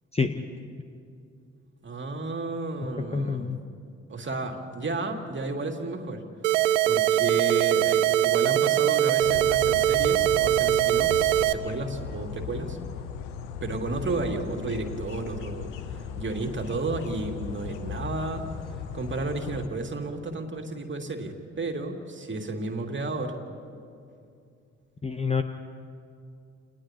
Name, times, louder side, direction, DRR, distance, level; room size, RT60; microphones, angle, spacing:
voice 1, 0.1-0.4 3.0-3.6 25.0-25.4, left 5 dB, 15° left, 8 dB, 1.0 m, -27 dB
voice 2, 1.8-3.5 4.1-6.2 6.9-12.8 13.6-18.5 18.9-23.4, right 2 dB, 30° right, 3 dB, 2.6 m, -32 dB
sound 1, 6.4-11.5, right 13 dB, 70° right, 0.6 m, -22 dB
sound 2, 9.2-19.7, left 7 dB, 70° left, 0.9 m, -37 dB
30.0 x 29.5 x 2.9 m, 2.5 s
figure-of-eight pair, 40°, 37 cm